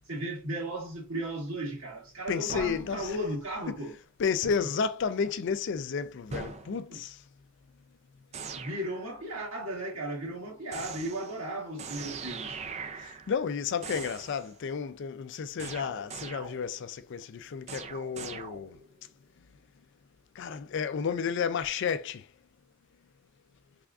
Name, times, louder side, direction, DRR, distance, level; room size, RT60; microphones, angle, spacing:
voice 1, 0.1-3.9 6.9-7.0 8.5-12.6, right 1 dB, 75° right, 1.7 m, -35 dB
voice 2, 2.3-3.2 3.7-7.2 13.0-18.8 20.4-22.3, left 6 dB, 60° left, 0.4 m, -32 dB
sound 1, 2.5-3.8 4.4-4.8 6.3-6.8 8.3-9.2 10.7-11.5 11.8-13.5 13.8-14.5 15.6-16.9 17.7-19.0, right 5 dB, 30° right, 0.4 m, -42 dB
3.5 x 3.5 x 2.4 m
head